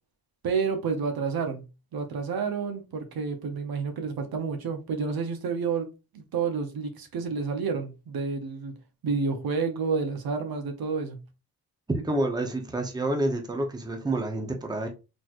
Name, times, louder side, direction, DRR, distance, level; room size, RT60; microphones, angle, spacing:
voice 1, 0.4-1.6 1.9-5.9 6.1-8.7 9.0-11.2, right 5 dB, 70° right, 0.9 m, -29 dB
voice 2, 11.9-14.9, right 2 dB, 10° right, 0.8 m, -28 dB
4.1 x 3.0 x 2.5 m
cardioid pair, 120°, 38 cm